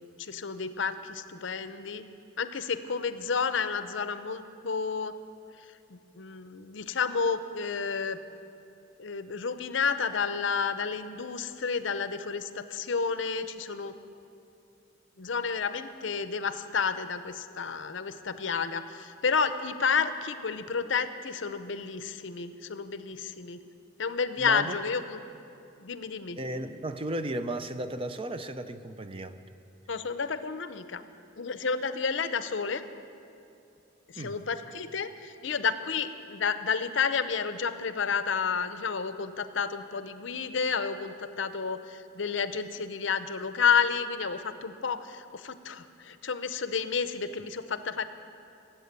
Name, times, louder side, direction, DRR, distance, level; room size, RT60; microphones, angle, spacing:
voice 1, 0.2-2.0 2.4-5.1 5.9-8.2 9.0-13.9 15.2-23.6 24.0-25.2 25.8-26.4 29.9-31.0 31.4-32.8 34.1-48.0, left 5 dB, 65° left, 11 dB, 0.7 m, -31 dB
voice 2, 24.4-24.8 26.4-29.4 34.2-34.4, right 1 dB, 30° right, 10 dB, 0.5 m, -35 dB
16.0 x 8.4 x 8.1 m, 2.7 s
head